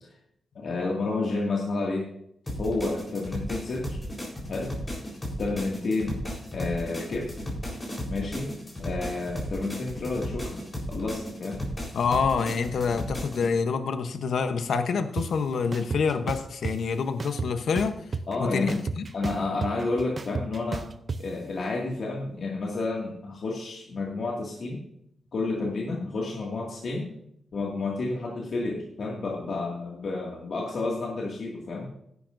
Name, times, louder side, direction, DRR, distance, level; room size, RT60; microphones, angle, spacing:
voice 1, 0.6-2.1 2.6-4.0 4.5-4.7 5.4-6.2 6.5-7.4 8.1-8.5 8.8-11.6 18.3-18.7 19.1-20.9 21.2-24.8 25.3-27.1 27.5-31.9, left 3 dB, 55° left, -2 dB, 2.1 m, -30 dB
sound 1, 2.5-13.5, equal, 20° left, 4.0 m, -35 dB
voice 2, 11.9-18.0 18.4-19.0, left 5 dB, 75° left, 8 dB, 0.9 m, -27 dB
sound 2, 15.2-15.3 15.7-16.7 17.2-18.4 18.7-21.2, right 4 dB, 35° right, 0.6 m, -32 dB
16.5 x 11.0 x 2.6 m, 0.73 s
wide cardioid pair, 155°, 0 cm